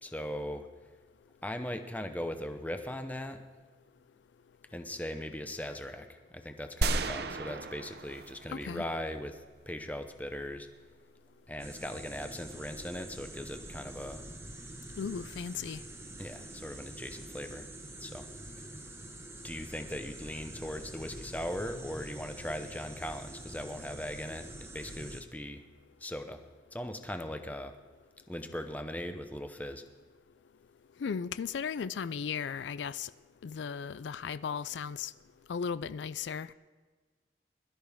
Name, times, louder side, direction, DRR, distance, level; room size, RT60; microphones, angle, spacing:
voice 1, 0.0-0.7 1.4-3.4 4.7-6.1 6.3-9.4 9.7-10.7 11.5-14.2 16.2-17.7 18.0-18.3 19.4-25.6 26.0-26.4 26.7-27.7 28.3-29.8, left 1 dB, 10° left, 0.8 m, -39 dB
sound 1, 6.8-9.1, right 3 dB, 60° right, 0.7 m, -34 dB
voice 2, 8.5-8.8 15.0-15.8 31.0-33.1 33.4-35.1 35.5-36.5, left 6 dB, 80° left, 0.4 m, -36 dB
sound 2, 11.6-25.2, right 1 dB, 15° right, 1.2 m, -46 dB
21.5 x 12.5 x 3.6 m
head